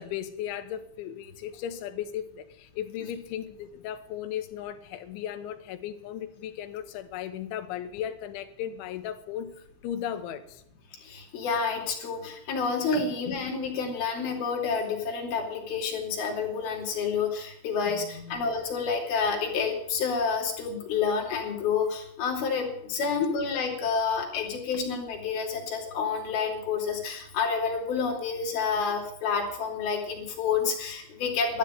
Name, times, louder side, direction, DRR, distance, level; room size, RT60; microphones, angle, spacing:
voice 1, 0.0-10.6 12.9-13.6 17.9-18.5 23.0-23.3, left 10 dB, 80° left, 3.4 m, -36 dB
voice 2, 11.0-31.6, left 5 dB, 55° left, 4.5 m, -29 dB
12.5 x 9.9 x 9.2 m
omnidirectional pair, 5.6 m